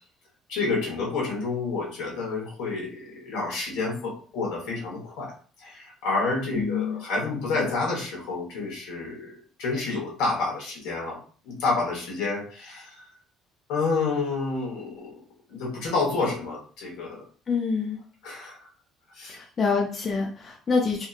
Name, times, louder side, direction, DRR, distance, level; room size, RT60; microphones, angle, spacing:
voice 1, 0.5-5.3 5.6-9.3 9.6-11.2 11.4-13.0 13.7-15.1 15.5-17.2 18.2-18.6 19.2-19.4, left 3 dB, 80° left, -1 dB, 1.2 m, -29 dB
voice 2, 6.5-7.0 17.5-18.0 19.3-21.1, left 5 dB, 25° left, 1 dB, 0.4 m, -26 dB
2.8 x 2.6 x 2.4 m, 0.40 s
cardioid pair, 170°, 0 cm